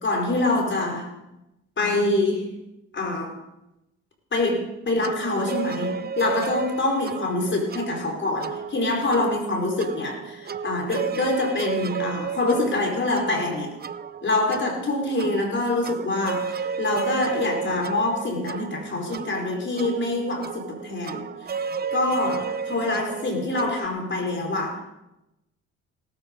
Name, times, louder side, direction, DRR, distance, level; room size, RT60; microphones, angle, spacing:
voice 1, 0.0-1.1 1.8-2.5 2.9-3.4 4.3-13.7 14.2-21.5 21.9-24.8, left 2 dB, 40° left, 2 dB, 4.9 m, -25 dB
sound 1, 5.0-23.9, right 6 dB, 30° right, 0.6 m, -33 dB
18.5 x 12.5 x 5.5 m, 0.94 s
cardioid pair, 90°, 30 cm